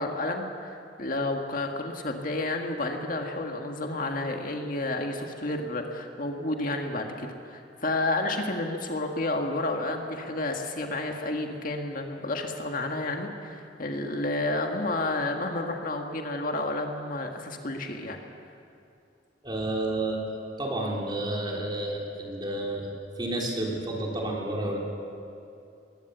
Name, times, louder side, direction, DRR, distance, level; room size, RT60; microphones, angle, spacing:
voice 1, 0.0-18.2, left 2 dB, 50° left, 3 dB, 1.7 m, -31 dB
voice 2, 19.4-20.2 20.6-22.9 23.2-24.8, right 1 dB, 25° right, -1 dB, 3.7 m, -30 dB
21.0 x 18.0 x 8.1 m, 2.6 s
head